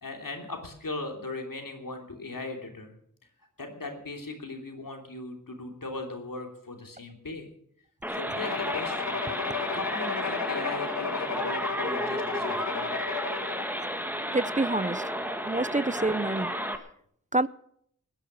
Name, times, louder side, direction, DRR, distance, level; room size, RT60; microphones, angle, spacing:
voice 1, 0.0-2.9 3.6-7.5 8.1-12.9, left 2 dB, 85° left, 3 dB, 3.1 m, -38 dB
sound 1, 8.0-16.8, equal, 5° right, 1.8 m, -32 dB
Bowed string instrument, 8.4-13.8, left 7 dB, 60° left, 0.8 m, -34 dB
voice 2, 14.3-15.0 15.4-16.5 17.3-17.5, right 2 dB, 25° right, 18 dB, 0.5 m, -27 dB
19.0 x 10.5 x 6.4 m, 0.66 s
wide cardioid pair, 45°, 33 cm